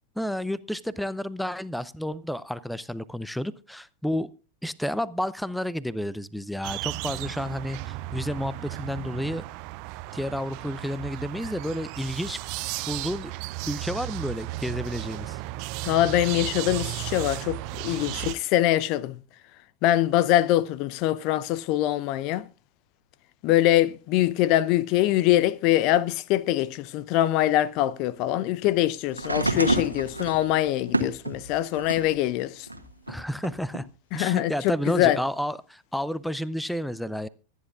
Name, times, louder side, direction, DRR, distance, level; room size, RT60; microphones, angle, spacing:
voice 1, 0.2-4.3 4.6-9.4 10.1-12.4 12.9-13.3 13.7-15.4 17.9-18.0 33.1-33.9 34.1-37.3, equal, ahead, 0.6 m, -31 dB
sound 1, 6.6-18.4, right 18 dB, 45° right, 0.6 m, -35 dB
voice 2, 15.8-19.2 19.8-22.4 23.4-32.7 34.1-34.5 34.9-35.2, left 14 dB, 40° left, 0.6 m, -23 dB
sound 2, 29.1-32.2 32.7-33.8 34.8-34.9, right 2 dB, 85° right, 1.6 m, -29 dB
25.0 x 10.0 x 2.4 m
figure-of-eight pair, 90°, 0 cm